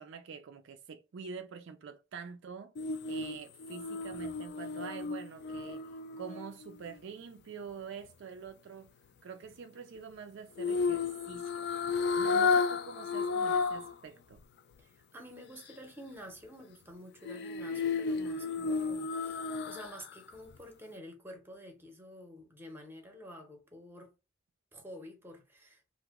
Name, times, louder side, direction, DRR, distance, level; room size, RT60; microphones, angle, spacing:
voice 1, 0.0-2.7 3.1-5.8 6.2-8.9 9.2-11.7 12.2-14.4, right 6 dB, 60° right, 0.4 m, -46 dB
sound 1, 2.8-7.0 10.6-13.9 14.3-14.4 17.2-20.1 20.5-20.6, left 4 dB, 55° left, 0.3 m, -32 dB
voice 2, 14.8-24.1 24.7-25.8, equal, 10° right, 0.7 m, -49 dB
2.9 x 2.1 x 3.4 m
head